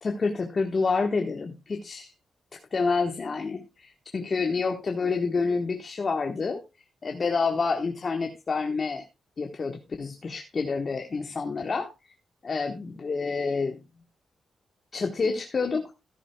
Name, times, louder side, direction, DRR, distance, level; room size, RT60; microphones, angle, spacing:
voice 1, 0.0-2.1 2.5-6.6 7.0-9.0 9.4-12.1 12.4-13.8 14.9-15.9, left 4 dB, 40° left, 4 dB, 1.2 m, -28 dB
13.5 x 11.0 x 2.2 m, 0.25 s
cardioid pair, 105°, 0 cm